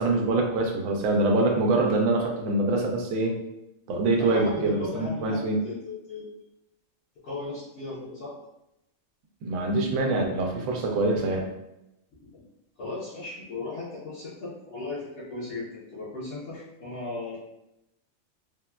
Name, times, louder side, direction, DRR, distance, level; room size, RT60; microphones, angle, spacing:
voice 1, 0.0-3.3 3.9-5.6 9.4-11.4, right 2 dB, 85° right, 1 dB, 1.0 m, -24 dB
voice 2, 4.2-6.3 7.2-8.3 12.2-12.4 12.8-17.4, left 3 dB, 65° left, -11 dB, 1.1 m, -36 dB
3.4 x 2.2 x 2.3 m, 0.86 s
omnidirectional pair, 1.4 m